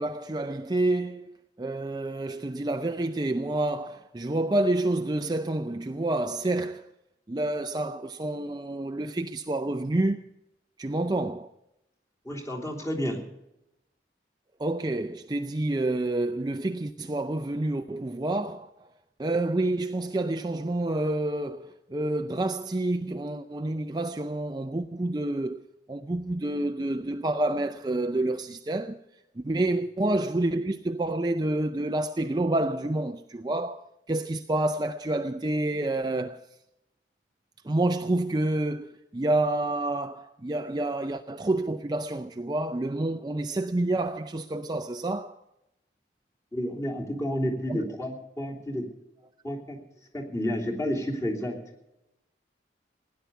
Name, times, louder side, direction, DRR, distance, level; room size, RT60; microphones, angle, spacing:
voice 1, 0.0-6.9 7.3-10.2 10.8-11.5 14.6-18.9 19.2-25.6 25.9-29.0 29.4-36.4 37.6-45.4 47.7-47.9, right 2 dB, 20° right, 0.5 m, -28 dB
voice 2, 12.2-13.2 29.4-29.5 46.5-48.9 49.4-49.8 50.1-51.6, equal, 15° left, 3.1 m, -30 dB
17.0 x 10.5 x 6.9 m
head